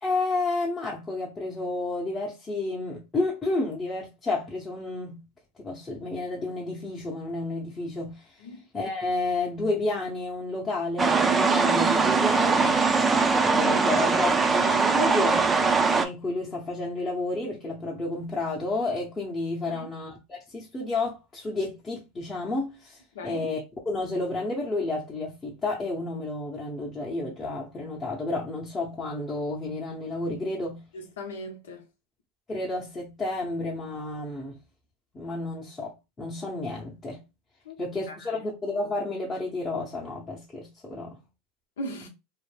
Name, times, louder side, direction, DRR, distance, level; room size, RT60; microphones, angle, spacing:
voice 1, 0.0-5.2 5.6-8.4 8.7-12.8 13.4-15.4 15.9-23.6 23.9-30.8 32.5-34.6 35.1-37.2 37.8-41.2, left 2 dB, 20° left, 0.8 m, -31 dB
sound 1, 11.0-16.1, right 4 dB, 15° right, 0.4 m, -21 dB
voice 2, 30.9-31.9 37.6-37.8 38.1-38.5 41.8-42.1, left 1 dB, 90° left, 0.8 m, -39 dB
2.5 x 2.2 x 3.2 m
supercardioid pair, 115°, 0 cm